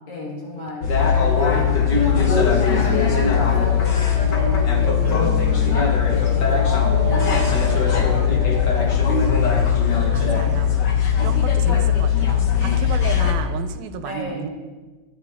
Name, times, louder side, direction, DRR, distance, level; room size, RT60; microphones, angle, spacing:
voice 1, 0.1-0.9 1.5-9.0 14.0-14.5, left 2 dB, 75° left, -5 dB, 5.5 m, -32 dB
sound 1, 0.8-13.3, left 7 dB, 50° left, 1.3 m, -19 dB
Dog, 3.4-9.0, right 11 dB, 70° right, 2.6 m, -35 dB
Bowed string instrument, 5.0-8.3, right 5 dB, 45° right, 2.0 m, -39 dB
voice 2, 10.1-10.8 11.2-14.5, right 8 dB, 90° right, 9 dB, 2.7 m, -32 dB
21.0 x 9.6 x 3.6 m, 1.3 s
omnidirectional pair, 4.0 m